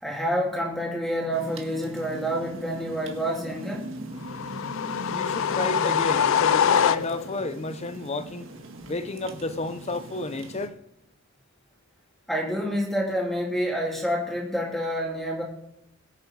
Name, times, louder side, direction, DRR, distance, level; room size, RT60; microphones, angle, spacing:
voice 1, 0.0-3.9 12.3-15.4, equal, ahead, 3.2 m, -28 dB
sound 1, 1.3-10.7, right 1 dB, 65° right, 1.9 m, -40 dB
sound 2, 4.2-7.4, left 8 dB, 70° left, 0.4 m, -24 dB
voice 2, 5.1-8.5 8.9-10.8, left 2 dB, 30° left, 0.8 m, -31 dB
22.0 x 7.6 x 4.7 m
head